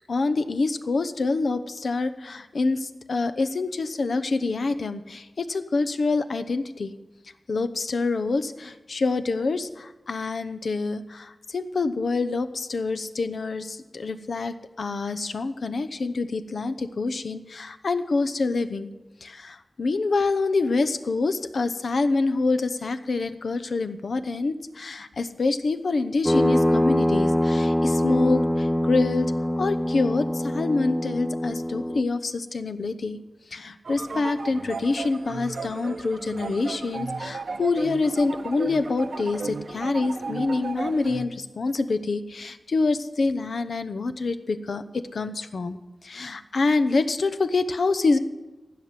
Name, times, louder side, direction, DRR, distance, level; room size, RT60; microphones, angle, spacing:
voice 1, 0.1-6.9 7.5-18.9 19.2-29.3 29.6-33.2 33.5-48.2, left 3 dB, 85° left, 11 dB, 0.8 m, -26 dB
sound 1, 26.3-32.0, left 1 dB, 10° left, 0.5 m, -24 dB
sound 2, 33.8-41.3, right 4 dB, 85° right, 0.9 m, -34 dB
15.5 x 5.9 x 9.6 m, 1.1 s
wide cardioid pair, 75°, 0 cm